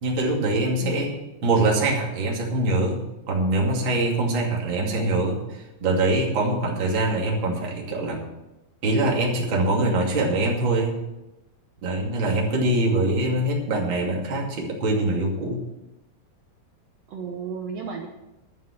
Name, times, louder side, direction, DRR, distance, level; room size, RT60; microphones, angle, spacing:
voice 1, 0.0-3.0 3.3-8.2 8.8-11.0 11.8-15.6, right 2 dB, 35° right, -2 dB, 2.8 m, -23 dB
voice 2, 0.8-1.1 17.1-18.1, right 6 dB, 85° right, 2 dB, 1.4 m, -33 dB
12.5 x 7.4 x 7.4 m, 0.96 s
omnidirectional pair, 4.3 m